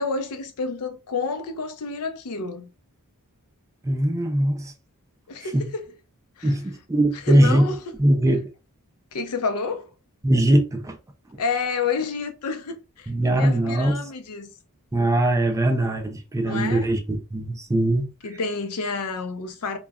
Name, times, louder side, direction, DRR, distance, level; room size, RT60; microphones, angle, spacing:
voice 1, 0.0-2.7 5.3-5.9 6.4-6.5 7.1-7.9 9.1-9.9 11.4-13.1 13.4-14.5 16.4-16.9 18.2-19.8, left 4 dB, 80° left, 0.5 m, -29 dB
voice 2, 3.8-4.7 5.5-5.7 6.4-7.6 8.0-8.5 10.2-11.0 13.1-14.1 14.9-18.1, right 1 dB, 15° right, 0.3 m, -21 dB
2.3 x 2.1 x 3.4 m
head